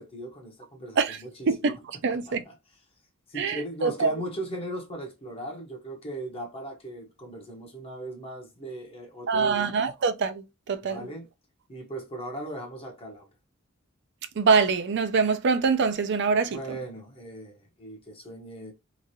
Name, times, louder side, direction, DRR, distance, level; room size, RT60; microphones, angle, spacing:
voice 1, 0.0-1.5 2.1-2.5 3.3-9.8 10.9-11.3 11.7-13.3 16.5-18.7, right 1 dB, 25° left, 0.8 m, -38 dB
voice 2, 1.5-1.8 2.0-2.4 3.4-4.1 9.3-11.1 14.4-16.8, right 5 dB, 55° right, 0.4 m, -24 dB
2.9 x 2.4 x 2.6 m
head